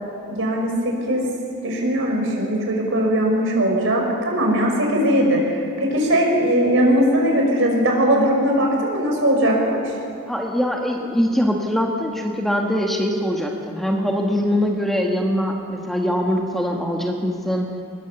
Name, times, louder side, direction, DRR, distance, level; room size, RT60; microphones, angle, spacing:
voice 1, 0.3-1.2 1.6-9.8, equal, 60° right, 0 dB, 5.7 m, -19 dB
voice 2, 10.3-17.7, equal, ahead, 0 dB, 1.5 m, -22 dB
24.5 x 20.0 x 7.1 m, 2.5 s
head